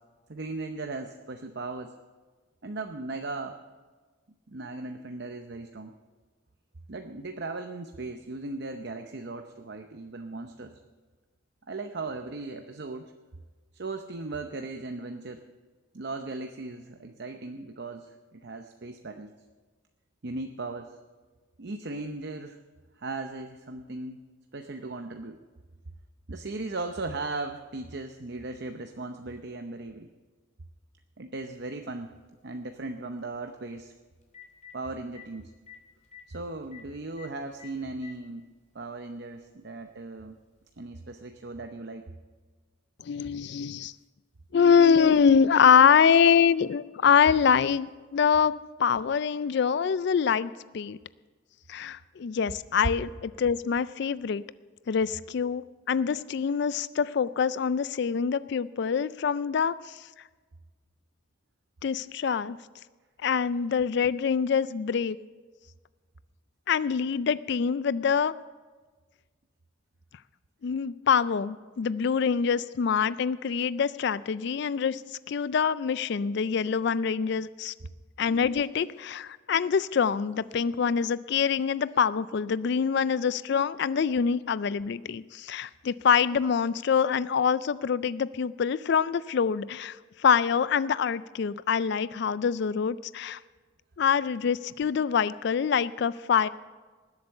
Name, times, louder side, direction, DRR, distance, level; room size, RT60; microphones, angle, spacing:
voice 1, 0.3-1.9 2.6-3.6 4.5-5.9 6.9-10.8 11.7-13.1 13.7-15.4 15.9-19.3 20.2-20.9 21.6-22.6 23.0-24.2 24.5-25.4 26.3-30.1 31.2-32.1 32.4-33.9 34.7-35.5 36.3-38.5 38.7-40.4 40.8-42.0, right 3 dB, 55° right, 6 dB, 0.7 m, -37 dB
Telephone, 31.5-31.6 33.8-33.9 34.2-34.7 35.1-35.3 35.7-35.8 36.0-36.2 36.7-36.8 37.2-37.3 37.6-38.2 39.2-39.3 40.7-40.8, left 9 dB, 35° left, 2.9 m, -47 dB
voice 2, 43.0-43.9 44.5-51.0 51.7-54.4 54.9-60.1 61.8-62.6 63.2-65.2 66.7-68.3 70.6-77.7 78.2-93.4 94.0-96.5, left 6 dB, 55° left, 16 dB, 0.3 m, -25 dB
19.5 x 8.1 x 6.6 m, 1.4 s
head